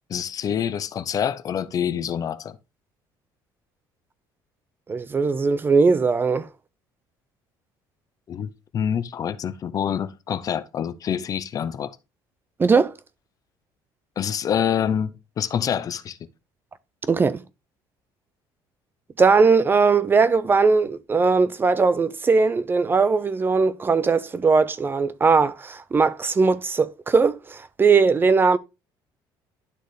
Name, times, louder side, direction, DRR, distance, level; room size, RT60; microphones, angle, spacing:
voice 1, 0.1-2.6 8.3-12.0 14.2-16.2, left 8 dB, 40° left, 0.7 m, -26 dB
voice 2, 4.9-6.5 12.6-12.9 17.1-17.4 19.2-28.6, right 4 dB, 25° right, 0.5 m, -19 dB
11.5 x 3.9 x 3.3 m
cardioid pair, 120°, 9 cm